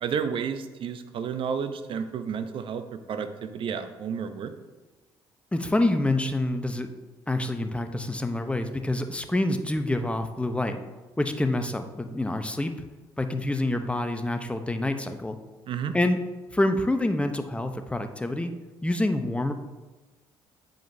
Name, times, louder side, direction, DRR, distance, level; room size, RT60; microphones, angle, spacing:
voice 1, 0.0-4.5 15.7-15.9, right 7 dB, 55° right, 9 dB, 0.7 m, -31 dB
voice 2, 5.5-6.9 7.3-10.8 11.2-12.7 13.2-15.4 15.9-16.2 16.5-18.5 18.8-19.5, left 1 dB, 10° left, 7 dB, 0.7 m, -27 dB
9.1 x 5.0 x 2.7 m, 1.2 s
hypercardioid pair, 55°, 10 cm